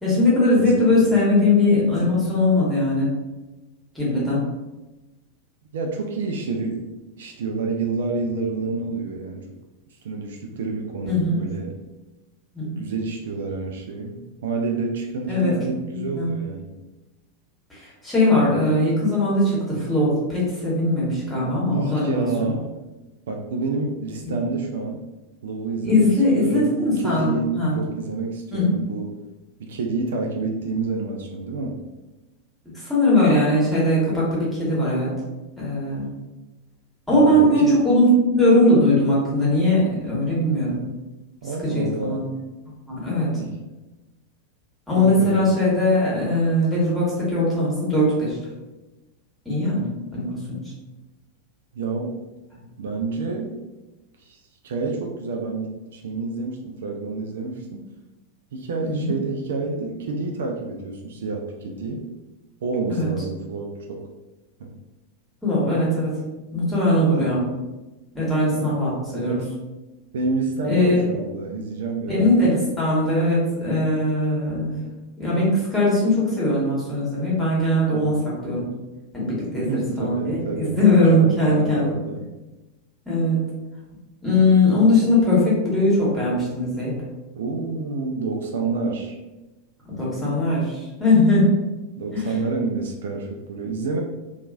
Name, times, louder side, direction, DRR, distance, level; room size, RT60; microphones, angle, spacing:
voice 1, 0.0-3.1 3.9-4.4 11.1-11.4 12.5-12.8 15.3-15.6 15.9-16.3 18.0-22.5 24.2-24.3 25.8-27.7 28.5-28.7 32.8-35.1 35.6-36.1 37.1-40.8 41.6-42.2 42.9-43.4 44.9-48.4 49.4-50.6 58.8-59.1 62.9-63.1 65.4-66.1 66.5-67.4 68.1-69.4 70.7-71.0 72.1-74.8 75.2-78.2 78.4-78.7 79.1-79.7 80.0-82.0 83.1-83.4 84.2-86.9 90.0-91.5 92.1-92.3, left 1 dB, 5° left, -7 dB, 1.2 m, -20 dB
voice 2, 0.6-1.2 5.7-6.9 7.2-9.5 10.0-11.7 12.8-16.7 21.7-22.7 23.3-25.0 25.4-29.2 29.6-31.8 37.1-37.8 41.4-42.2 43.4-43.6 44.9-45.4 51.7-52.2 52.8-53.6 54.2-57.8 58.5-62.1 62.6-64.0 64.6-64.7 67.0-67.3 68.5-68.8 69.1-69.5 70.1-72.3 77.9-78.3 79.6-80.8 81.1-82.2 87.4-89.2 92.0-94.0, right 3 dB, 60° right, 1 dB, 0.3 m, -28 dB
2.9 x 2.3 x 2.4 m, 1.1 s
figure-of-eight pair, 90°, 0 cm